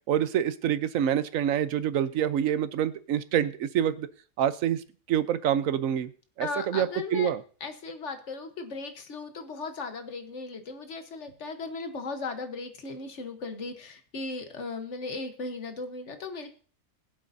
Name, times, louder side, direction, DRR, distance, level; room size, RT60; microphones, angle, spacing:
voice 1, 0.1-4.1 4.4-6.1 6.4-7.4, right 10 dB, 70° right, 14 dB, 1.1 m, -26 dB
voice 2, 6.4-7.3 7.6-16.5, left 3 dB, 55° left, 7 dB, 1.4 m, -37 dB
21.5 x 7.7 x 2.7 m, 0.42 s
omnidirectional pair, 1.6 m